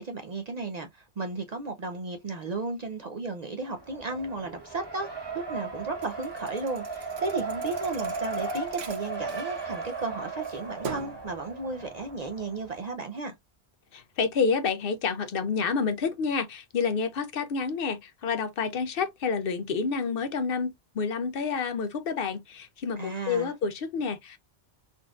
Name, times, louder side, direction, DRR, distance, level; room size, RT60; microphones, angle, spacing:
voice 1, 0.0-5.1 5.3-13.3 23.0-23.5, right 3 dB, 55° right, 0.5 m, -34 dB
Race car auto racing, 3.7-12.8, right 4 dB, 25° right, 0.9 m, -36 dB
Thump thud, 6.0-10.1 10.4-11.3, right 5 dB, 75° right, 0.9 m, -42 dB
voice 2, 13.9-24.4, left 5 dB, 65° left, 0.8 m, -29 dB
3.7 x 2.5 x 2.3 m
omnidirectional pair, 1.1 m